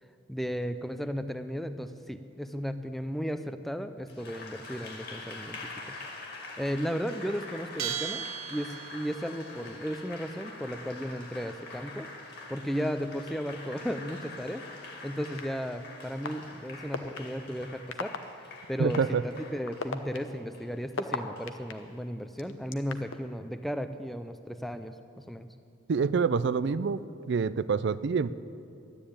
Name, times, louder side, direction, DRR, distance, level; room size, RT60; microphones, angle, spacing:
voice 1, 0.3-5.6 6.6-8.2 8.5-12.1 12.5-14.6 15.0-25.5, equal, ahead, 10 dB, 0.5 m, -35 dB
Applause, 4.1-21.9, left 3 dB, 50° left, 2.0 m, -45 dB
Bell, 7.8-9.4, right 9 dB, 85° right, 0.9 m, -36 dB
sound 1, 15.4-15.5 16.2-16.3 16.9-17.2 17.9-18.2 18.9-19.0 19.7-21.7 22.4-23.2, left 4 dB, 65° left, 0.8 m, -33 dB
voice 2, 18.8-19.2 25.9-27.0 27.3-28.3, right 5 dB, 55° right, 17 dB, 0.4 m, -26 dB
12.5 x 10.0 x 8.6 m, 2.6 s
head